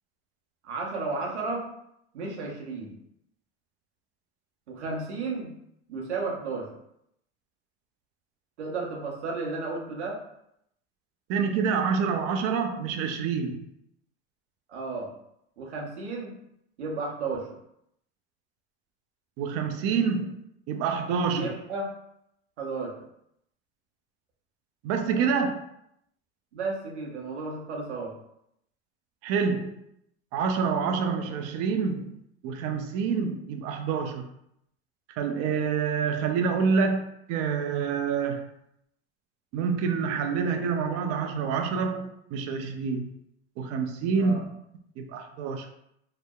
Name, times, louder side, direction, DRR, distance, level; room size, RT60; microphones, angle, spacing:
voice 1, 0.6-1.7 2.1-2.9 4.7-5.5 5.9-6.7 8.6-10.2 14.7-15.1 15.6-16.3 16.8-17.5 21.3-21.9 22.6-22.9 26.5-28.1 44.2-44.4, right 3 dB, 90° right, -1 dB, 0.7 m, -33 dB
voice 2, 11.3-13.6 19.4-20.3 20.7-21.5 24.8-25.6 29.2-29.8 30.3-32.1 32.4-34.2 35.2-38.5 39.5-43.1 43.6-44.4 45.0-45.7, right 5 dB, 45° right, 5 dB, 0.4 m, -27 dB
2.7 x 2.0 x 2.2 m, 0.76 s
hypercardioid pair, 95°, 33 cm